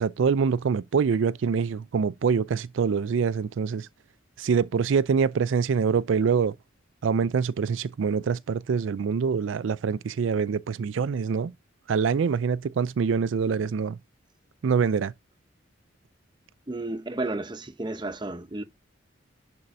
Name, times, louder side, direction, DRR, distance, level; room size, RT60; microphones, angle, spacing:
voice 1, 0.0-3.9 4.4-6.5 7.0-11.5 11.9-14.0 14.6-15.1, right 6 dB, 80° right, 0.4 m, -25 dB
voice 2, 16.7-18.6, right 2 dB, 25° right, 0.7 m, -32 dB
10.5 x 4.4 x 2.6 m
head